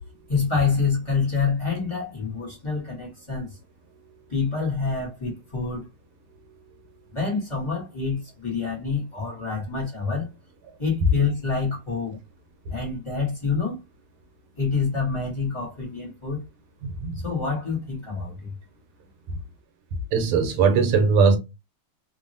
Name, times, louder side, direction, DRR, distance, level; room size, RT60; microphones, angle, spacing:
voice 1, 0.3-3.6 4.3-5.9 7.1-10.3 10.8-12.2 12.7-13.8 14.6-16.4 17.2-18.5, left 5 dB, 45° left, 0.3 m, -27 dB
voice 2, 20.1-21.4, right 5 dB, 85° right, 1.5 m, -19 dB
3.6 x 2.0 x 2.6 m
omnidirectional pair, 2.4 m